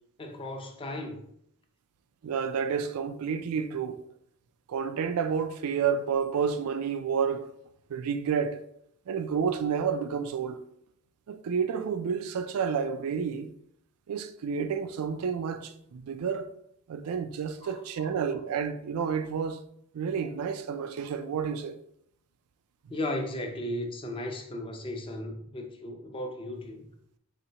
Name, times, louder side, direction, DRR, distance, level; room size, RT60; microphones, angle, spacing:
voice 1, 0.2-1.2 17.6-17.7 22.9-26.9, left 1 dB, 25° left, 0.5 m, -35 dB
voice 2, 2.2-4.0 4.7-7.5 7.9-8.6 9.1-10.6 11.3-13.5 14.1-16.5 16.9-19.6 19.9-21.8, right 6 dB, 85° right, 0.4 m, -30 dB
4.3 x 3.4 x 2.8 m
head